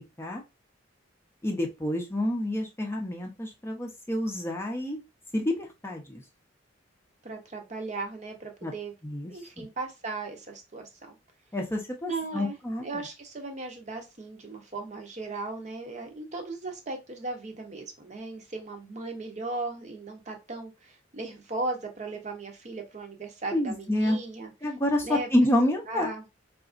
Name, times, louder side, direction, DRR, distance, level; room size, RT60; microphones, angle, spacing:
voice 1, 1.4-5.0 5.3-6.2 8.6-8.7 9.0-9.3 9.6-9.7 11.5-12.9 23.5-24.2 24.6-26.1, left 1 dB, 15° left, 1 dB, 0.6 m, -28 dB
voice 2, 7.2-8.9 9.3-11.1 12.1-24.5 25.0-25.3 25.9-26.2, right 3 dB, 40° right, 4 dB, 0.8 m, -37 dB
3.9 x 2.5 x 2.4 m, 0.24 s
head